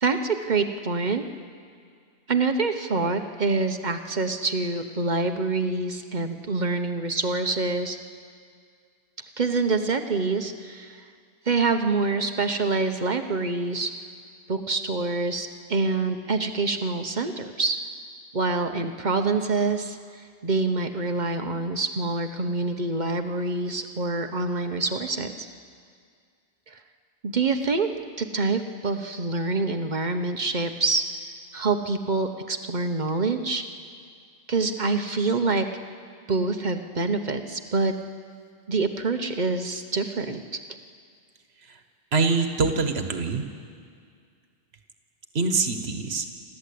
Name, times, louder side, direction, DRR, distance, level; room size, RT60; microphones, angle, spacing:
voice 1, 0.0-1.2 2.3-8.0 9.4-11.0 11.4-13.9 14.5-17.8 18.3-25.5 26.7-26.8 27.2-31.0 31.5-33.6 34.5-35.7 36.3-37.9 38.7-40.4, right 3 dB, 50° right, 7 dB, 1.1 m, -26 dB
voice 2, 42.1-43.4 45.3-46.3, right 4 dB, 90° right, 6 dB, 1.5 m, -24 dB
28.0 x 13.0 x 8.5 m, 2.1 s
omnidirectional pair, 1.0 m